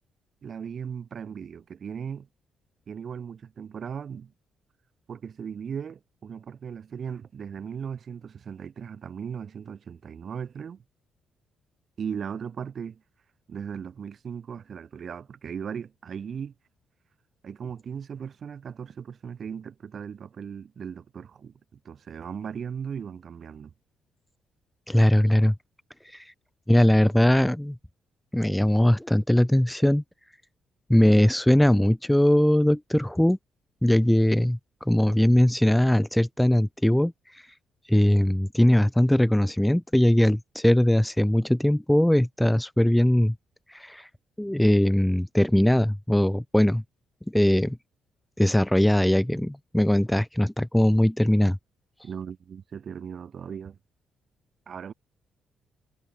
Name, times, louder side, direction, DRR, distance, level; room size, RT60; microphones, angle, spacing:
voice 1, 0.4-2.3 2.9-4.3 5.1-10.8 12.0-13.0 13.5-16.5 17.4-23.7 52.0-53.8 54.7-54.9, right 7 dB, 50° right, 2.3 m, -37 dB
voice 2, 24.9-25.5 26.1-26.3 26.7-27.8 28.3-30.0 30.9-33.4 33.8-37.1 37.9-43.3 43.7-44.1 44.4-46.8 47.3-47.8 48.4-51.6, left 1 dB, 5° left, 0.3 m, -20 dB
cardioid pair, 90°, 0 cm